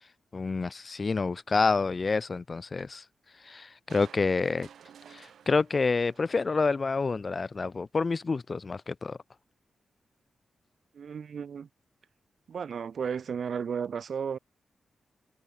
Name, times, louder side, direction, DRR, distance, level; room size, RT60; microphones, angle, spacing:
voice 1, 0.3-3.0 3.4-4.7 5.1-9.2, left 4 dB, 35° left, 0.4 m, -28 dB
Crushing, 3.9-7.3 7.7-7.8, right 8 dB, 90° right, 0.8 m, -54 dB
voice 2, 10.9-11.7 12.5-14.4, right 7 dB, 60° right, 0.5 m, -34 dB
wide cardioid pair, 135°, 0 cm